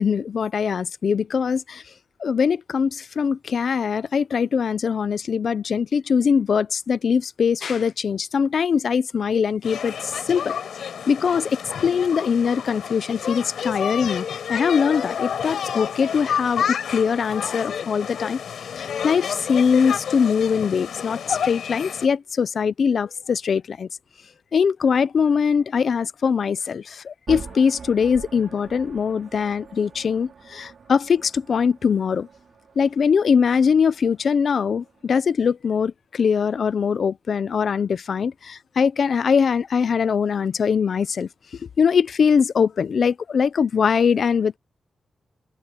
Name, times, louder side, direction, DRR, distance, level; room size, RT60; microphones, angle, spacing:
voice 1, 0.0-1.8 2.2-10.5 11.1-11.6 11.8-18.4 18.8-23.9 24.5-32.3 32.8-41.3 41.6-44.6, left 6 dB, 55° left, 0.6 m, -22 dB
sound 1, 9.6-22.1, left 8 dB, 75° left, 6.7 m, -30 dB
sound 2, 27.3-35.3, right 6 dB, 55° right, 5.1 m, -43 dB
wide cardioid pair, 150°, 0 cm